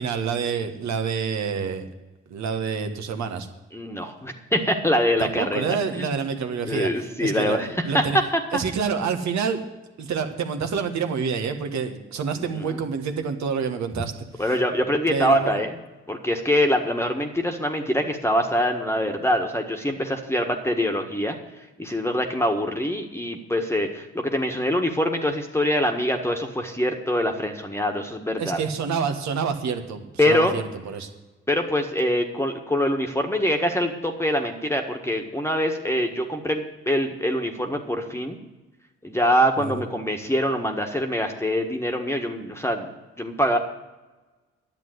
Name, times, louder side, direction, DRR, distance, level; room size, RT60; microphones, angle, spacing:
voice 1, 0.0-1.9 2.3-3.5 5.2-8.2 8.5-9.6 10.0-14.4 15.1-15.5 28.4-31.1 39.6-39.8, right 6 dB, 65° right, 6 dB, 1.5 m, -28 dB
voice 2, 3.7-6.1 6.6-7.7 7.9-8.2 8.5-8.6 12.4-12.8 14.4-15.7 16.1-21.3 21.8-28.6 30.2-30.5 31.5-38.4 39.0-42.9 43.2-43.6, equal, 10° left, 3 dB, 1.6 m, -24 dB
10.5 x 8.1 x 8.0 m, 1.2 s
hypercardioid pair, 50°, 30 cm